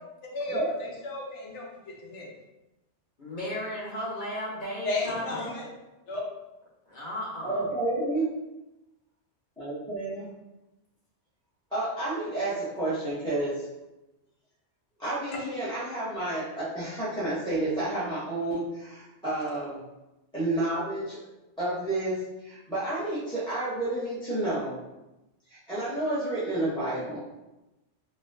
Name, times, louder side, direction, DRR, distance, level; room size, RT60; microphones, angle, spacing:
voice 1, 0.3-2.3 4.8-5.7 6.1-6.2, left 2 dB, 80° left, -2 dB, 1.1 m, -34 dB
voice 2, 3.2-5.5 6.9-7.7, left 1 dB, 45° left, -5 dB, 0.9 m, -35 dB
voice 3, 7.4-8.3 9.6-10.2 11.7-13.5 15.0-19.8 20.3-21.2 21.6-22.2 22.4-24.8 25.5-27.2, right 2 dB, 5° left, -12 dB, 0.6 m, -30 dB
3.9 x 2.2 x 2.6 m, 0.99 s
omnidirectional pair, 1.2 m